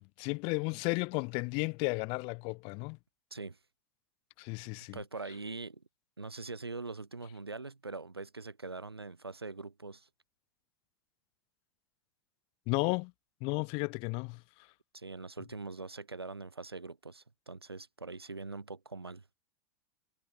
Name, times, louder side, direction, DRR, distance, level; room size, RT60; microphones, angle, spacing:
voice 1, 0.2-3.0 4.4-5.0 12.7-13.1 13.4-14.4, left 32 dB, 45° left, 5.4 m, -33 dB
voice 2, 4.9-5.8 6.2-10.1 14.9-19.2, right 3 dB, 80° right, 6.3 m, -43 dB
figure-of-eight pair, 85°, 13 cm